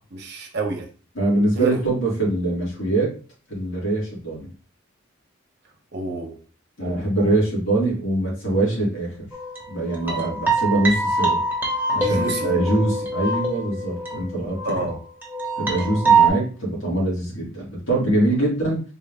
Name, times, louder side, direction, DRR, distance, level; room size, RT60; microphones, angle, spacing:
voice 1, 0.1-0.9 1.5-1.8 5.9-6.4 6.8-7.3 10.0-10.3 12.0-12.6 14.6-15.0 15.8-16.0, right 3 dB, 55° right, 2 dB, 0.9 m, -29 dB
voice 2, 1.2-3.2 3.5-4.5 6.8-9.3 9.7-11.4 11.9-14.9 15.6-18.8, right 2 dB, 85° left, -4 dB, 2.1 m, -23 dB
sound 1, 9.3-14.9 15.2-16.3, right 4 dB, 10° right, 0.9 m, -23 dB
4.0 x 2.5 x 3.5 m, 0.38 s
head